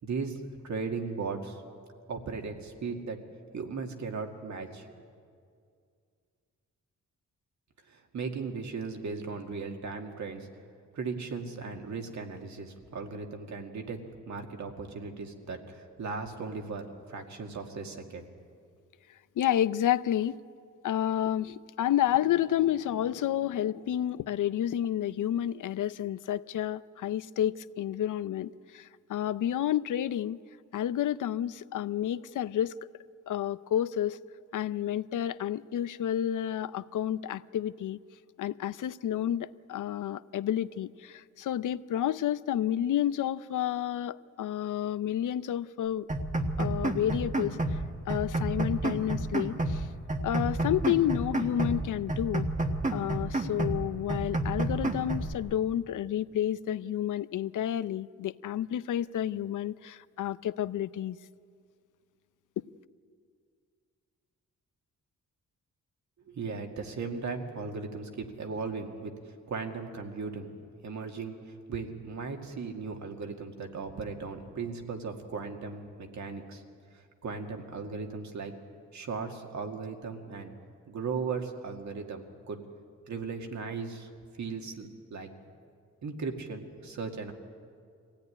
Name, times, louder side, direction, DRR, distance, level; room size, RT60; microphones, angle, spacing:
voice 1, 0.0-1.6 2.1-3.2 3.5-4.9 7.9-10.5 10.9-14.0 14.3-18.3 66.3-70.5 70.8-76.6 76.9-78.5 78.9-80.5 80.9-82.6 83.1-84.1 84.4-85.3 86.0-87.3, right 4 dB, 70° right, 3 dB, 2.2 m, -37 dB
voice 2, 19.4-20.4 20.8-30.4 30.7-32.8 33.3-34.2 34.5-38.0 38.4-46.1 46.6-49.9 50.2-52.5 52.9-61.2 62.6-62.7, left 11 dB, 90° left, 16 dB, 0.6 m, -30 dB
sound 1, 46.1-47.8 48.1-49.8 50.1-51.8 52.1-53.8 54.1-55.3, right 2 dB, 25° right, 1.4 m, -30 dB
23.5 x 16.5 x 9.9 m, 2.2 s
wide cardioid pair, 155°, 30 cm